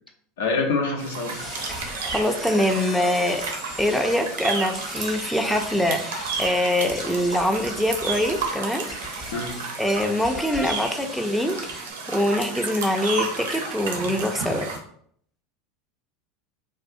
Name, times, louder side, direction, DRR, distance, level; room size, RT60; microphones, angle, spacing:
voice 1, 0.4-1.4 9.3-9.6, left 3 dB, 75° left, 2 dB, 0.5 m, -25 dB
sound 1, 1.0-14.8, right 4 dB, 75° right, 0.5 m, -32 dB
sound 2, 1.3-6.5 6.9-11.8, left 2 dB, 25° left, 0.7 m, -39 dB
voice 2, 1.7-3.5 3.8-9.3 9.8-14.7, left 1 dB, ahead, 3 dB, 0.3 m, -24 dB
2.5 x 2.0 x 2.5 m, 0.64 s
hypercardioid pair, 85°, 0 cm